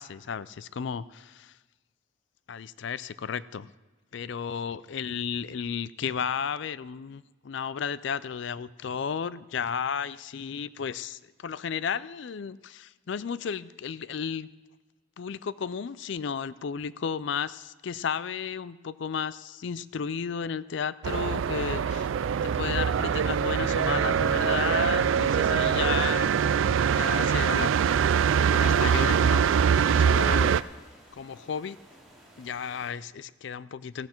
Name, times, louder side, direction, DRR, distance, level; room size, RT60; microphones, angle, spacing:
voice 1, 0.0-1.6 2.5-3.7 4.1-14.5 15.2-22.1 22.4-26.3 26.9-27.7 28.3-29.5 29.8-30.6 31.1-31.8 32.4-34.1, left 6 dB, 60° left, 18 dB, 0.4 m, -33 dB
sound 1, 21.0-30.6, right 7 dB, 70° right, 0.3 m, -23 dB
sound 2, 24.1-32.9, right 1 dB, ahead, 3.4 m, -53 dB
15.0 x 11.5 x 4.5 m, 1.2 s
head